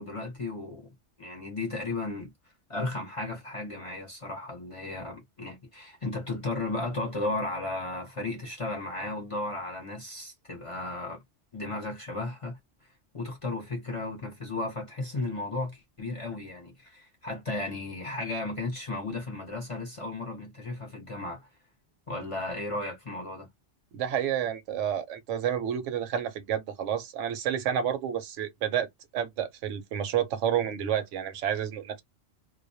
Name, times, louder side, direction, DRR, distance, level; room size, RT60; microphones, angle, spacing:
voice 1, 0.0-2.3 2.7-11.2 11.5-21.6 22.1-23.5, left 2 dB, 35° left, 0.6 m, -35 dB
voice 2, 23.9-28.9 29.1-32.0, right 9 dB, 80° right, 0.9 m, -30 dB
2.3 x 2.1 x 2.6 m
omnidirectional pair, 1.2 m